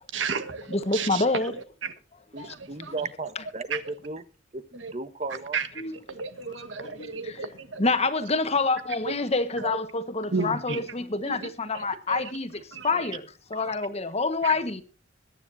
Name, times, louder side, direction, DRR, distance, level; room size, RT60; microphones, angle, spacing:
voice 1, 0.1-1.9 2.4-2.9 3.7-3.8 4.8-4.9 5.5-5.7 6.1-7.9 9.1-9.2 9.6-9.8 10.3-10.8 11.3-11.5 11.7-12.3 12.7-13.1 13.5-13.8 14.4-14.5, right 5 dB, 80° right, 1.6 m, -33 dB
voice 2, 0.7-1.5 2.4-2.5 5.8-5.9 6.8-7.5 7.8-12.5 12.8-14.8, left 3 dB, 35° left, 1.4 m, -27 dB
voice 3, 2.3-4.2 4.5-5.6, right 3 dB, 35° right, 1.1 m, -35 dB
21.5 x 10.0 x 2.7 m
head